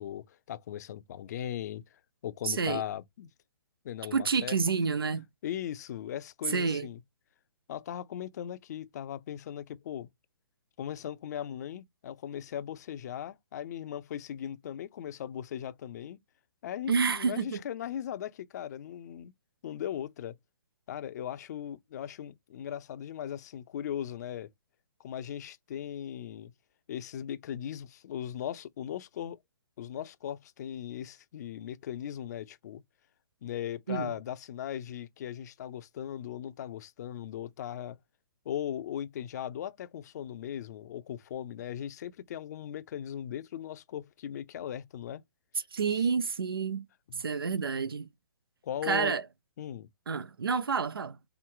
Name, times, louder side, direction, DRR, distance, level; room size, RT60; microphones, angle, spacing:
voice 1, 0.0-1.8 2.2-3.3 3.8-4.6 5.4-7.0 7.7-10.1 10.8-16.2 16.6-19.3 19.6-20.4 20.9-24.5 25.0-26.5 26.9-29.4 29.8-32.8 33.4-38.0 38.5-45.2 45.9-46.0 47.1-47.2 48.6-49.1 49.6-49.9, left 10 dB, 50° left, 0.5 m, -38 dB
voice 2, 2.4-2.8 4.1-5.2 6.5-6.9 16.9-17.6 33.9-34.1 45.7-46.9 47.2-48.1 48.8-49.2 50.1-51.2, right 5 dB, 90° right, 0.6 m, -29 dB
4.5 x 2.1 x 3.8 m
hypercardioid pair, 140°, 12 cm